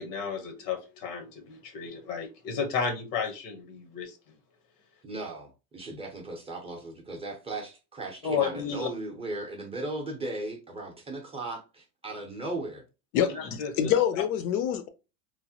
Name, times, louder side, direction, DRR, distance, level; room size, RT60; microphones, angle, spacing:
voice 1, 0.0-4.2 8.2-8.9 13.2-13.7, left 6 dB, 90° left, 1.0 m, -32 dB
voice 2, 5.0-12.8, right 2 dB, 15° right, 0.6 m, -37 dB
voice 3, 13.1-14.9, left 9 dB, 65° left, 0.6 m, -26 dB
3.1 x 2.1 x 2.7 m
supercardioid pair, 125°, 46 cm